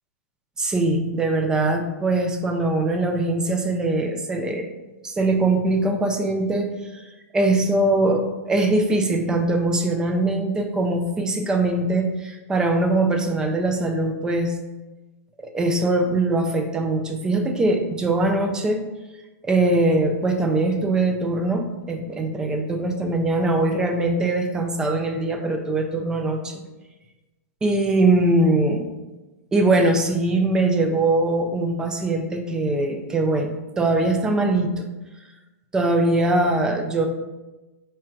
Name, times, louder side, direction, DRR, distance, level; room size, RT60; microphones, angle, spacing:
voice 1, 0.6-4.7 5.0-7.0 7.3-14.5 15.4-18.8 19.4-26.6 27.6-28.9 29.5-34.9 35.7-37.1, right 2 dB, 10° right, 5 dB, 0.4 m, -22 dB
4.4 x 2.4 x 4.4 m, 1.1 s
supercardioid pair, 160°, 8 cm